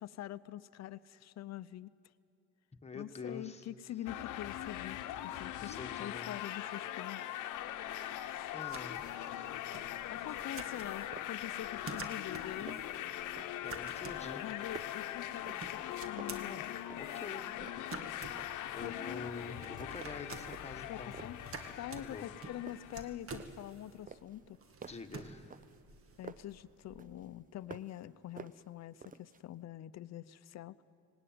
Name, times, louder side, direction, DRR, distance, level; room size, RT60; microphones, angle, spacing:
voice 1, 0.0-1.9 2.9-5.0 5.2-7.2 7.8-8.5 10.1-12.8 14.4-15.6 16.1-16.7 18.8-19.3 20.9-21.4 21.7-24.6 26.2-30.8, left 12 dB, 60° left, 15 dB, 0.6 m, -45 dB
voice 2, 2.8-3.6 5.6-6.3 8.5-9.3 13.6-14.4 16.4-16.6 16.9-17.7 18.2-21.2 22.0-22.3 24.9-25.6, left 4 dB, 20° left, 5 dB, 1.5 m, -46 dB
sound 1, 4.1-23.2, left 12 dB, 90° left, 0.9 m, -41 dB
sound 2, 7.5-27.1, right 4 dB, 45° right, 1.7 m, -51 dB
sound 3, 11.1-11.5 11.8-12.2 12.5-13.0 13.4-13.7 14.1-15.9 16.2-17.3 17.6-18.7 19.1-19.4 19.8-20.2 20.5-21.5 22.0-22.4 22.7-23.7 24.1-26.6 27.0-28.1 28.4-29.4, right 6 dB, 30° right, 0.6 m, -52 dB
19.0 x 17.5 x 9.4 m, 2.5 s
cardioid pair, 90°, 30 cm